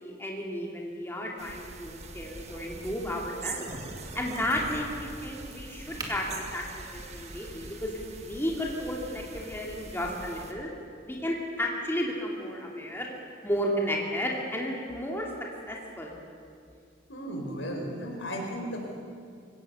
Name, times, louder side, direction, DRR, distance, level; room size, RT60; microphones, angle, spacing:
voice 1, 0.0-3.7 4.1-6.6 6.9-7.9 8.2-10.7 11.0-13.1 13.4-15.3 15.7-16.2, equal, 10° left, -1 dB, 2.4 m, -33 dB
sound 1, 1.4-10.5, right 3 dB, 35° right, 1.7 m, -43 dB
Crack, 3.7-9.1, right 2 dB, 20° right, 2.3 m, -47 dB
voice 2, 17.1-19.0, equal, 90° left, 1 dB, 4.5 m, -35 dB
23.0 x 17.5 x 6.9 m, 2.4 s
head